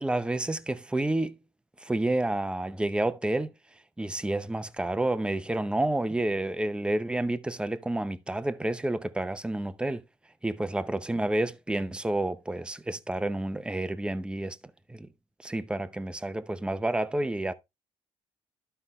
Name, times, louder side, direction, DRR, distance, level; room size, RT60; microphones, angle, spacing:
voice 1, 0.0-1.4 1.8-3.5 4.0-10.0 10.4-14.6 14.9-15.1 15.4-17.5, right 1 dB, 10° right, 0.7 m, -29 dB
12.0 x 5.6 x 3.1 m
cardioid pair, 115°, 11 cm